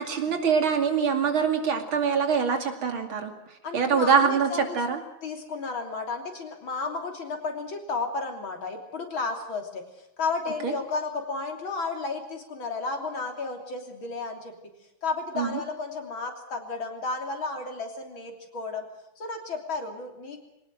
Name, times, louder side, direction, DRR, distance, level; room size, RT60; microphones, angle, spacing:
voice 1, 0.0-3.3 3.7-5.0 10.6-10.7 15.3-15.6, right 6 dB, 90° right, 6 dB, 3.3 m, -24 dB
voice 2, 3.6-4.8 5.2-9.8 10.2-14.5 15.0-18.9 19.2-20.4, left 4 dB, 80° left, 4 dB, 3.9 m, -33 dB
22.5 x 18.5 x 7.7 m, 0.89 s
omnidirectional pair, 2.2 m